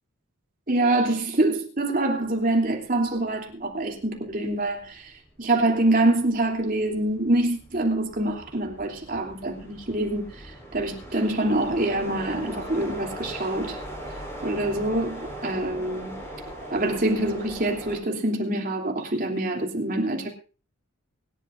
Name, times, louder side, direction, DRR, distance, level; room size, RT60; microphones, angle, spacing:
voice 1, 0.7-5.1 5.4-13.8 14.4-16.2 16.7-20.3, right 2 dB, 40° right, 3.1 m, -25 dB
sound 1, 3.2-3.3 3.6-18.0, right 1 dB, 15° left, 4.7 m, -40 dB
24.0 x 11.5 x 2.6 m
head